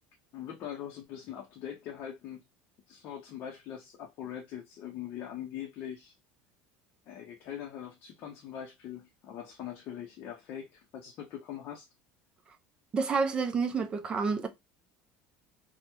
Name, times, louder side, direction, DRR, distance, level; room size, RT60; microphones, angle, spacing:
voice 1, 0.3-2.4 2.9-6.1 7.1-11.9, left 10 dB, 45° left, 0.6 m, -42 dB
voice 2, 12.9-14.5, right 5 dB, 20° right, 0.4 m, -29 dB
3.2 x 2.1 x 2.9 m
cardioid pair, 155°, 5 cm